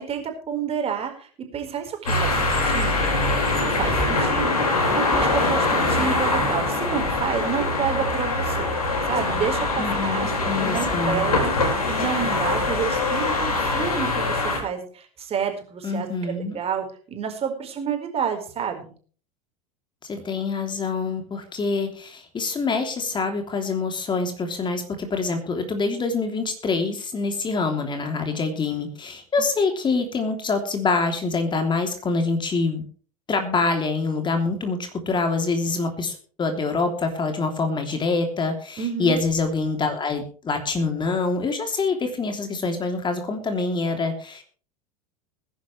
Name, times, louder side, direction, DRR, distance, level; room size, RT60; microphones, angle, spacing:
voice 1, 0.0-3.1 3.6-8.7 9.1-11.5 11.9-18.9 38.8-39.2, right 7 dB, 30° right, 4 dB, 4.7 m, -29 dB
sound 1, 2.1-14.6, left 2 dB, 80° left, 5.2 m, -23 dB
sound 2, 3.8-4.5 5.1-5.6 7.0-7.7 8.9-9.4 10.8-11.3 13.7-13.8, equal, 5° left, 3.8 m, -35 dB
voice 2, 9.8-11.2 15.8-16.6 20.1-32.8 33.3-44.4, left 4 dB, 25° left, 5 dB, 3.1 m, -25 dB
21.0 x 11.0 x 3.3 m, 0.42 s
figure-of-eight pair, 80°, 19 cm